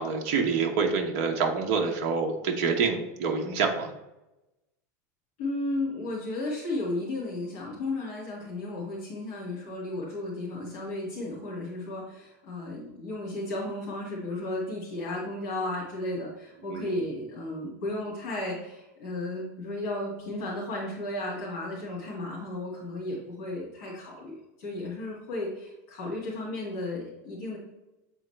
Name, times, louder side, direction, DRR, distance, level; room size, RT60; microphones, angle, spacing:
voice 1, 0.0-3.9 16.7-17.0, right 5 dB, 45° right, 2 dB, 0.9 m, -27 dB
voice 2, 5.4-27.6, left 2 dB, 50° left, -5 dB, 2.1 m, -34 dB
7.8 x 3.9 x 3.3 m, 0.96 s
supercardioid pair, 175°, 9 cm